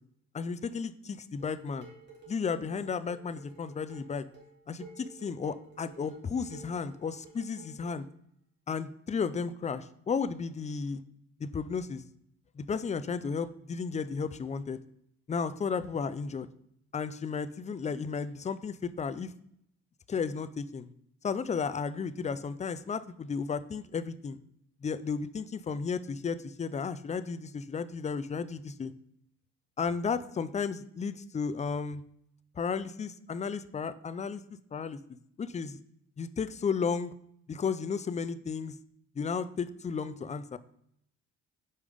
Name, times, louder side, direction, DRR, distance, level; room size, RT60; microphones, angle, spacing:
voice 1, 0.3-1.9 2.3-4.3 4.7-8.1 8.7-11.0 11.4-12.0 12.6-14.8 15.3-16.5 16.9-19.3 20.1-20.9 21.2-24.4 24.8-28.9 29.8-32.0 32.6-34.4 34.7-35.0 35.4-35.8 36.2-37.1 37.5-38.7 39.2-40.6, left 5 dB, 25° left, 13 dB, 0.4 m, -33 dB
Dishes pots and pans, 1.4-8.0, right 4 dB, 35° right, 2.5 m, -53 dB
5.5 x 4.8 x 5.0 m, 0.72 s
cardioid pair, 90°, 30 cm